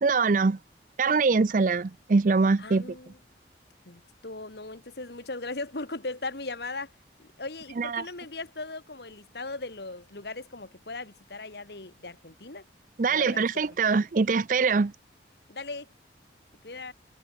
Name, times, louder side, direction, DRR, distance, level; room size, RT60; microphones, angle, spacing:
voice 1, 0.0-0.6 1.0-2.9 7.8-8.0 13.0-14.9, right 4 dB, 45° right, 0.5 m, -23 dB
voice 2, 2.6-3.2 3.9-6.9 7.2-12.6 13.1-13.8 15.5-15.9 16.6-16.9, left 3 dB, 65° left, 2.1 m, -38 dB
head